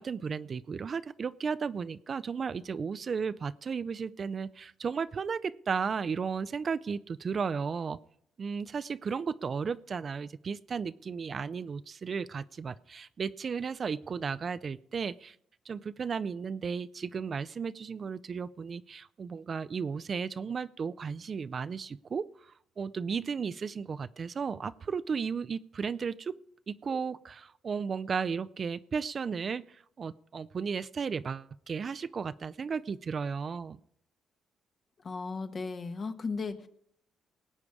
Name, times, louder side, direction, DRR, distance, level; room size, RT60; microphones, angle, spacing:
voice 1, 0.0-8.0 8.4-15.4 15.7-22.3 22.8-26.4 26.7-33.8, right 6 dB, 45° right, 15 dB, 0.4 m, -34 dB
voice 2, 35.0-36.7, left 4 dB, 45° left, 8 dB, 1.2 m, -36 dB
19.5 x 8.4 x 4.8 m, 0.69 s
cardioid pair, 90°, 0 cm